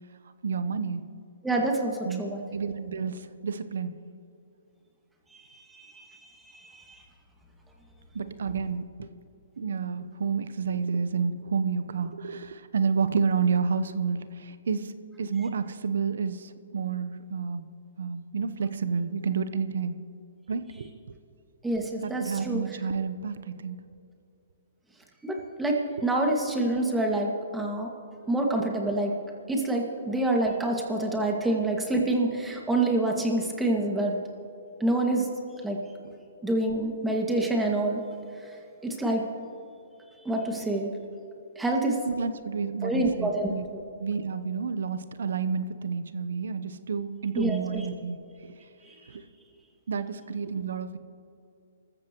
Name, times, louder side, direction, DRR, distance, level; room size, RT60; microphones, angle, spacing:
voice 1, 0.4-1.0 2.0-4.0 8.1-9.1 9.6-14.9 15.2-17.7 18.0-20.0 20.5-20.9 22.0-23.8 36.0-36.1 42.1-43.7 44.0-48.6 49.1-49.2 49.9-51.0, right 5 dB, 70° right, 11 dB, 0.9 m, -30 dB
voice 2, 1.4-2.4 5.7-5.9 6.5-6.8 21.6-22.6 25.2-27.9 28.3-29.1 29.5-34.1 34.8-35.3 35.6-35.8 36.4-38.0 38.8-39.2 40.3-40.9 41.6-42.0 42.8-43.5 47.4-47.9 48.9-49.0, right 2 dB, 5° right, 0 dB, 2.0 m, -27 dB
26.5 x 14.0 x 3.1 m, 2.6 s
hypercardioid pair, 135°, 0 cm